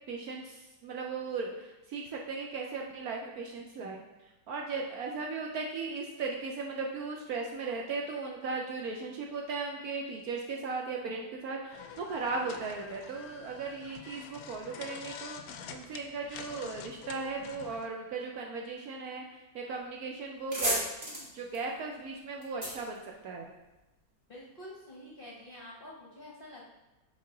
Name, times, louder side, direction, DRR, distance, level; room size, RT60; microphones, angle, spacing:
voice 1, 0.1-4.0 4.5-19.2 19.5-20.8 21.3-23.5, right 4 dB, 70° right, 0 dB, 1.0 m, -37 dB
sound 1, 11.7-17.9, left 7 dB, 70° left, 0.9 m, -47 dB
sound 2, 19.8-19.9 20.2-23.8, equal, 20° right, 1.9 m, -35 dB
voice 2, 24.3-26.7, left 1 dB, 40° left, -4 dB, 0.8 m, -48 dB
7.3 x 4.0 x 3.8 m, 1.0 s
omnidirectional pair, 2.0 m